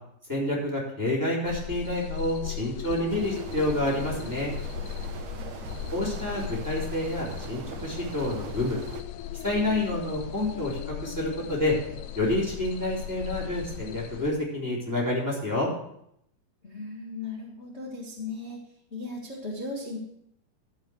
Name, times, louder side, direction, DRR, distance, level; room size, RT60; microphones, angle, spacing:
voice 1, 0.3-4.5 5.9-8.8 9.4-11.8 12.1-15.7, left 1 dB, 5° right, -5 dB, 2.9 m, -28 dB
sound 1, 1.5-14.3, left 10 dB, 85° left, 2.6 m, -37 dB
sound 2, 3.1-9.0, right 8 dB, 75° right, 1.9 m, -41 dB
voice 2, 16.6-18.6 18.9-20.0, left 3 dB, 60° left, -3 dB, 0.6 m, -36 dB
14.0 x 5.6 x 6.2 m, 0.75 s
omnidirectional pair, 4.5 m